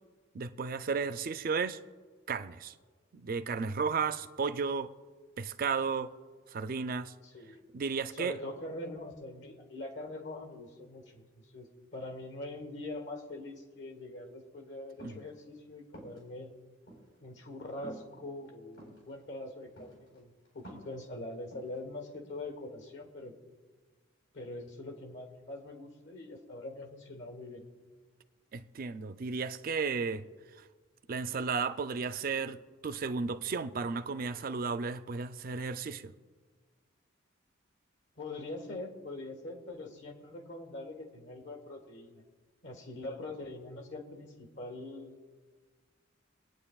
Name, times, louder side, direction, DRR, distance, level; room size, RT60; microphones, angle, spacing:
voice 1, 0.3-1.8 2.3-2.7 3.1-4.9 5.4-6.1 6.5-7.1 7.7-8.4 15.0-15.2 28.5-30.2 31.1-36.1, right 5 dB, 45° right, 0.4 m, -34 dB
voice 2, 8.1-16.5 17.2-23.4 24.3-27.6 38.2-42.2 42.6-45.3, left 2 dB, 65° left, 1.7 m, -43 dB
sound 1, 15.0-15.3 15.9-16.2 16.9-17.0 17.8-18.0 18.7-19.0 19.8-20.2 20.5-21.0 21.5-21.8, right 1 dB, 80° left, 4.2 m, -48 dB
24.5 x 9.2 x 2.4 m
head